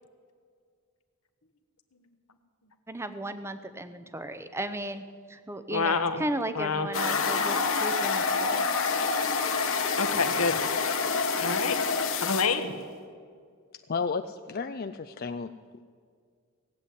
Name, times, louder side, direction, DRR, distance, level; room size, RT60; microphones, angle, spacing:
voice 1, 2.9-5.0 5.3-8.7, right 1 dB, 10° right, 10 dB, 0.8 m, -35 dB
voice 2, 5.7-6.2 6.5-6.9 9.6-10.6 11.4-11.7 12.2-12.7, left 4 dB, 85° left, 8 dB, 1.3 m, -27 dB
sound 1, 6.9-12.5, left 5 dB, 60° left, 1.4 m, -27 dB
voice 3, 13.9-15.5, left 5 dB, 45° left, 8 dB, 0.4 m, -32 dB
18.0 x 8.2 x 9.4 m, 2.1 s
head